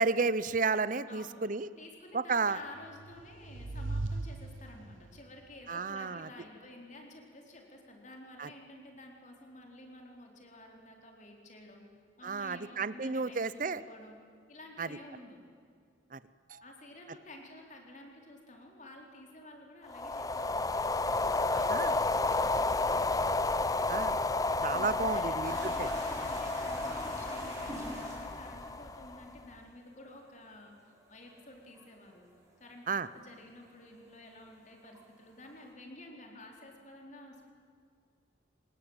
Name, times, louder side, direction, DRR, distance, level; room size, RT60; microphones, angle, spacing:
voice 1, 0.0-1.7 2.1-2.6 5.7-6.3 8.4-8.5 12.2-13.8 14.8-14.9 16.1-16.2 16.5-16.6 21.7-21.9 23.9-24.2 24.6-25.9 32.9-33.1, right 4 dB, 45° right, 15 dB, 0.7 m, -32 dB
voice 2, 1.1-1.4 1.8-11.8 12.2-14.2 14.5-15.4 16.6-23.3 24.7-32.3 32.6-37.4, left 1 dB, 40° left, 1 dB, 4.2 m, -51 dB
sound 1, 2.8-5.2, right 2 dB, 90° right, 0.9 m, -38 dB
sound 2, 19.9-29.4, left 2 dB, 20° left, 0.6 m, -31 dB
sound 3, 25.4-34.0 34.2-35.6, right 1 dB, 20° right, 6.0 m, -47 dB
26.0 x 20.5 x 9.0 m, 2.3 s
head